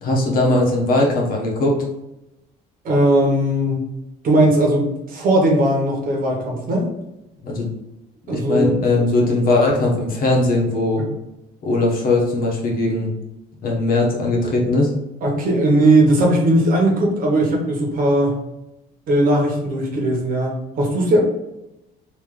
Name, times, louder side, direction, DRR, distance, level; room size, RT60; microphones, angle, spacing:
voice 1, 0.0-1.8 7.4-7.7 8.3-11.0 11.6-13.1 13.6-14.9, left 2 dB, 60° left, -1 dB, 1.1 m, -19 dB
voice 2, 2.8-3.8 4.2-6.9 8.3-8.8 11.0-11.1 15.2-18.4 19.1-21.2, right 1 dB, 55° right, -1 dB, 1.2 m, -18 dB
3.3 x 2.8 x 3.7 m, 0.91 s
cardioid pair, 110°, 17 cm